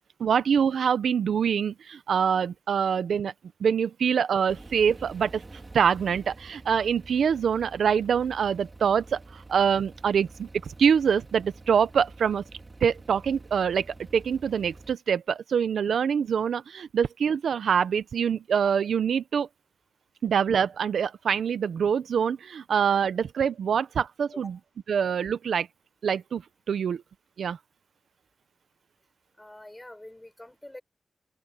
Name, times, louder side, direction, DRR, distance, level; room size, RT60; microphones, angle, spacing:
voice 1, 0.2-3.3 3.6-5.4 5.7-10.5 10.8-12.4 12.8-13.9 14.1-19.5 20.2-24.5 24.9-25.7 26.0-26.4 26.7-27.0 27.4-27.6, right 7 dB, 85° right, 0.7 m, -25 dB
sound 1, 4.5-15.0, right 2 dB, 25° right, 3.2 m, -47 dB
voice 2, 29.4-30.8, left 1 dB, 10° left, 6.1 m, -46 dB
open air
wide cardioid pair, 135°, 0 cm